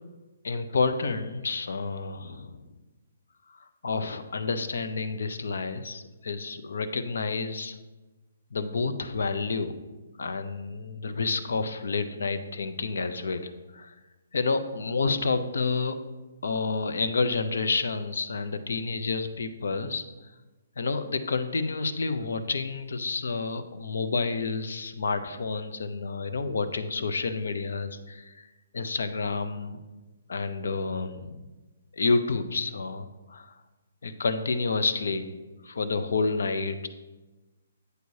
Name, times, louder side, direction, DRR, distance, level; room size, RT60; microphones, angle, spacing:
voice 1, 0.4-2.6 3.5-7.8 8.5-9.7 10.2-14.0 14.3-16.0 16.4-20.0 20.8-28.5 28.7-29.8 30.3-31.5 31.9-33.6 34.0-35.3 35.6-36.9, left 4 dB, 75° left, 10 dB, 0.5 m, -29 dB
7.9 x 4.7 x 2.7 m, 1.1 s
hypercardioid pair, 170°, 0 cm